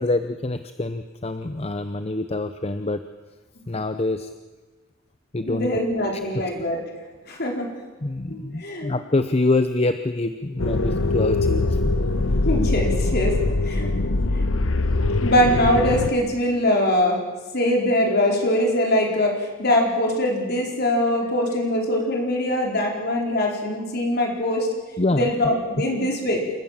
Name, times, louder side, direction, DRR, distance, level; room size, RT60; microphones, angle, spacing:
voice 1, 0.0-3.0 3.7-4.3 5.3-5.9 6.3-6.5 8.0-11.9 25.0-25.3 25.8-25.9, left 2 dB, 30° left, 10 dB, 0.7 m, -25 dB
voice 2, 5.5-6.8 7.3-7.7 8.3-8.9 12.4-13.3 13.6-13.9 15.2-17.2 17.5-24.7 25.1-26.4, left 1 dB, 50° left, 0 dB, 4.5 m, -22 dB
sound 1, 10.6-16.1, left 2 dB, 75° left, 1.0 m, -22 dB
27.5 x 14.5 x 7.5 m, 1.3 s
head